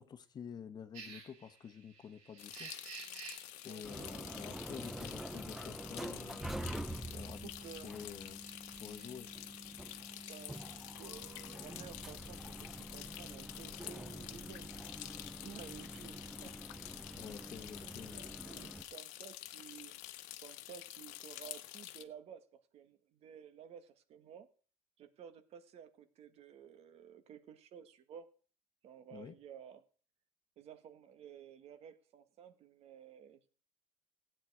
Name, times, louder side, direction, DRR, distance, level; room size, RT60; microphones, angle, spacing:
voice 1, 0.0-2.7 3.6-6.6 7.1-7.5 7.8-8.4 8.8-9.3 17.2-18.2 29.1-29.4, left 7 dB, 35° left, 1.1 m, -49 dB
sound 1, 0.9-11.6, right 5 dB, 90° right, 7.2 m, -56 dB
sound 2, 2.4-22.0, left 15 dB, 85° left, 1.0 m, -49 dB
voice 2, 3.6-4.8 7.4-8.0 10.3-14.7 15.4-16.6 18.1-20.0 20.4-24.5 25.0-28.3 28.8-29.8 30.6-33.5, right 8 dB, 55° right, 1.6 m, -54 dB
sound 3, 3.8-18.8, right 1 dB, ahead, 0.7 m, -47 dB
15.5 x 9.2 x 4.8 m
cardioid pair, 120°, 13 cm